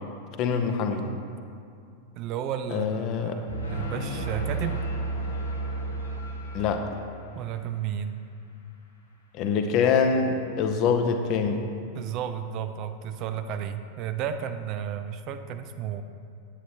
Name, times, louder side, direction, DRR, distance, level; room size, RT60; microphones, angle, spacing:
voice 1, 0.4-1.1 2.7-3.4 6.5-6.9 9.3-11.6, left 5 dB, 40° left, 5 dB, 0.7 m, -24 dB
voice 2, 2.2-4.9 7.3-8.2 11.9-16.0, right 8 dB, 40° right, 9 dB, 0.4 m, -33 dB
sound 1, 3.5-7.3, right 2 dB, 85° left, 1.9 m, -32 dB
9.9 x 8.1 x 3.0 m, 2.4 s
figure-of-eight pair, 90°, 0 cm